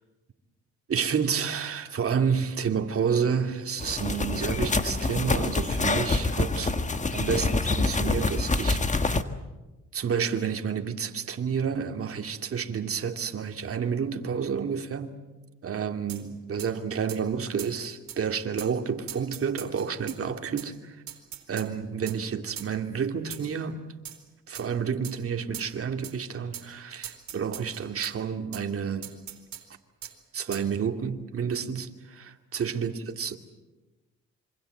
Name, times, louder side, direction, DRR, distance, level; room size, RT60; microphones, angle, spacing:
voice 1, 0.9-6.7 7.1-9.2 9.9-15.1 15.6-20.7 21.5-23.8 24.5-29.1 30.3-33.4, right 7 dB, 50° right, 2.5 m, -30 dB
sound 1, 3.8-9.2, left 3 dB, 25° left, 1.6 m, -26 dB
sound 2, 16.1-16.2 16.6-16.7 17.1-17.2 17.6-17.7 18.1-18.2 18.6-18.7 19.1-20.2 20.6-20.7 21.1-21.7 22.1-22.2 22.6-22.7 23.3-23.6 24.0-24.2 24.5-24.7 25.0-25.2 25.5-25.7 26.0-26.2 26.5-26.7 27.0-28.1 28.5-28.6 29.0-29.6 30.0-30.1 30.5-30.7, right 10 dB, 65° right, 3.7 m, -41 dB
26.5 x 25.0 x 7.9 m
cardioid pair, 90°, 30 cm